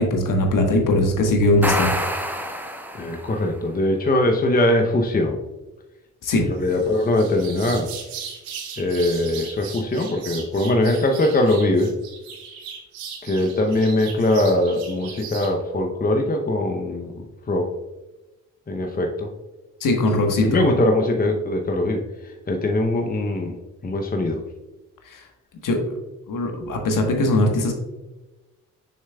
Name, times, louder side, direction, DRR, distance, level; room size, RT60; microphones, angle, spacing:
voice 1, 0.0-1.9 6.2-6.5 19.8-20.6 25.1-25.2 25.6-25.8 26.3-27.7, left 2 dB, 60° left, 3 dB, 1.4 m, -20 dB
sound 1, 1.4-3.4, equal, 5° right, 1.3 m, -27 dB
voice 2, 2.9-5.4 6.5-7.9 8.8-11.9 13.2-17.7 18.7-19.3 20.4-22.0 22.5-23.6 23.8-24.4, left 1 dB, 25° left, 3 dB, 0.8 m, -21 dB
sound 2, 6.6-15.5, right 6 dB, 85° right, 1.0 m, -38 dB
6.5 x 6.4 x 2.3 m, 1.1 s
hypercardioid pair, 50°, 36 cm